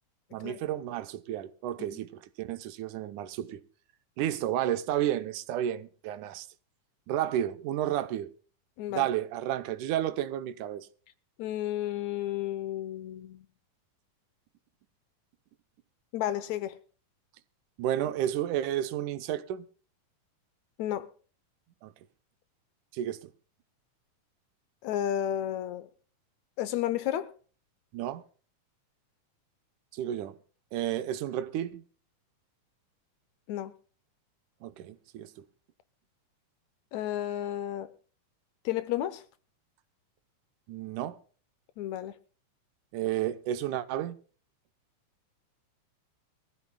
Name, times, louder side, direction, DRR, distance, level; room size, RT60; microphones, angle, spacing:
voice 1, 0.3-3.6 4.2-6.5 7.1-8.3 8.9-10.9 17.8-19.7 21.8-21.9 22.9-23.3 27.9-28.2 29.9-30.4 30.7-31.8 34.6-35.3 40.7-41.2 42.9-44.2, right 11 dB, 80° right, 2.3 m, -32 dB
voice 2, 11.4-13.5 16.1-16.8 20.8-21.1 24.8-25.9 26.6-27.3 33.5-33.7 36.9-37.9 38.7-39.2 41.8-42.1, left 12 dB, 75° left, 1.9 m, -32 dB
23.5 x 14.5 x 2.2 m
omnidirectional pair, 3.5 m